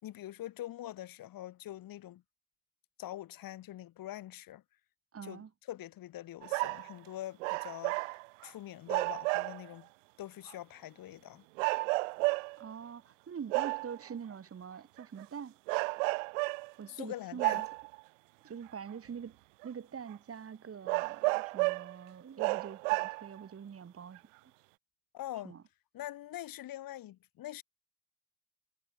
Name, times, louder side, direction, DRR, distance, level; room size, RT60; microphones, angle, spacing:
voice 1, 0.0-2.2 3.0-4.6 5.2-8.0 8.4-9.9 10.2-11.4 16.9-17.7 25.1-25.6 25.9-27.6, left 13 dB, 60° left, 6.0 m, -44 dB
voice 2, 5.1-5.5 12.6-15.6 16.8-17.6 18.4-19.4 19.6-24.5 25.4-25.6, right 7 dB, 35° right, 2.0 m, -45 dB
sound 1, 6.4-6.9 7.4-8.5 8.9-9.7 10.5-10.6 11.6-12.7 13.5-14.0 15.0-15.2 15.7-16.7 17.4-18.0 18.9-19.0 19.6-19.7 20.1-20.2 20.9-22.0 22.4-23.4 24.2-24.3, right 29 dB, 80° right, 0.9 m, -32 dB
hypercardioid pair, 55°, 37 cm